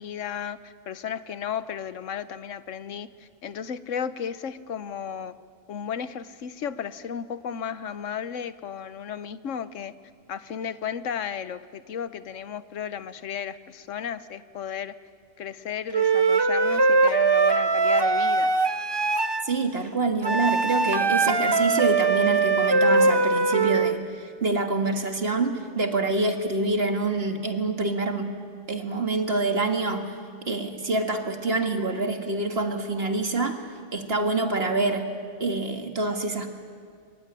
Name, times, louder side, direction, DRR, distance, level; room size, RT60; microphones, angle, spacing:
voice 1, 0.0-5.4 5.7-9.9 10.3-14.9 15.4-18.5, left 8 dB, 85° left, 14 dB, 1.2 m, -34 dB
Wind instrument woodwind instrument, 15.9-19.4 20.2-24.0, right 3 dB, 25° right, 0.6 m, -21 dB
voice 2, 19.4-28.4 28.7-30.1 30.5-33.6 33.9-35.0 35.4-36.5, right 3 dB, 55° right, 5 dB, 2.1 m, -26 dB
23.0 x 22.5 x 9.9 m, 2.1 s
omnidirectional pair, 1.3 m